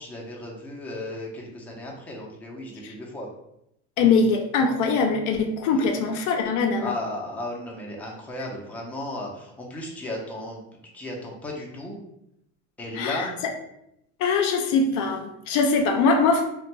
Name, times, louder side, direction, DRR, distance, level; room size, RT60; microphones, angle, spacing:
voice 1, 0.0-3.3 5.7-5.9 6.8-10.6 10.9-12.0 12.8-13.4, left 1 dB, 5° left, -3 dB, 0.5 m, -35 dB
voice 2, 4.0-7.0 12.9-13.3 14.2-16.4, left 4 dB, 55° left, 3 dB, 0.4 m, -22 dB
2.4 x 2.2 x 2.9 m, 0.80 s
supercardioid pair, 110°, 35 cm